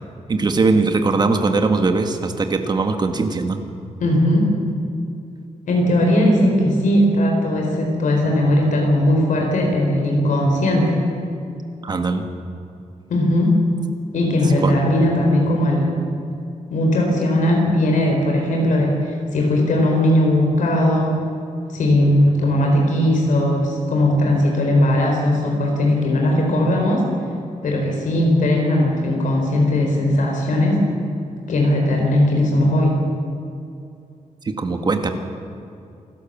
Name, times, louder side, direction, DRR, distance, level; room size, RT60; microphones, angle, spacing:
voice 1, 0.3-3.6 11.8-12.3 14.6-14.7 34.4-35.1, right 3 dB, 35° right, 6 dB, 1.7 m, -20 dB
voice 2, 4.0-4.5 5.7-11.0 13.1-13.6 14.1-15.9 16.7-21.2 21.7-27.1 27.6-30.8 31.5-33.0, left 1 dB, 75° left, 0 dB, 4.1 m, -18 dB
27.5 x 12.5 x 7.5 m, 2.5 s
wide cardioid pair, 170°, 13 cm